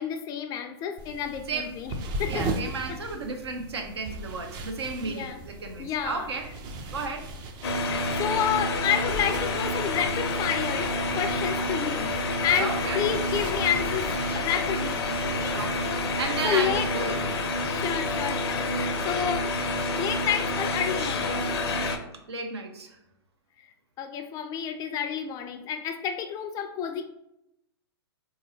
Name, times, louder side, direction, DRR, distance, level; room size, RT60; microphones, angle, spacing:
voice 1, 0.0-1.9 2.2-2.5 2.9-3.0 5.0-5.4 5.8-6.3 7.8-14.1 14.3-15.7 16.4-16.9 17.7-19.6 20.0-21.5 23.6-23.7 24.0-27.0, left 8 dB, 25° left, 7 dB, 0.4 m, -30 dB
sound 1, 1.0-16.6, right 2 dB, 30° right, 0.5 m, -39 dB
voice 2, 2.3-6.5 6.9-7.3 12.6-13.0 15.5-15.9 16.2-17.4 22.3-23.0, right 4 dB, 80° right, 4 dB, 0.7 m, -33 dB
sound 2, 7.6-22.0, left 2 dB, 70° left, 0.6 m, -28 dB
3.8 x 2.8 x 2.7 m, 0.84 s
hypercardioid pair, 120°, 14 cm